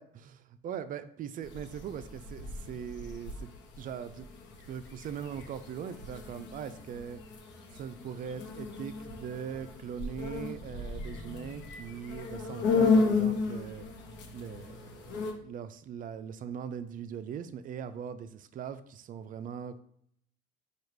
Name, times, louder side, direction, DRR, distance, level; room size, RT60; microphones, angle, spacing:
voice 1, 0.0-3.5 3.8-4.3 4.7-7.2 7.7-13.9 14.3-19.8, right 8 dB, 45° right, 12 dB, 0.4 m, -40 dB
sound 1, 1.4-15.3, left 4 dB, 65° left, 0.9 m, -34 dB
4.9 x 2.4 x 4.5 m, 0.69 s
supercardioid pair, 90°, 20 cm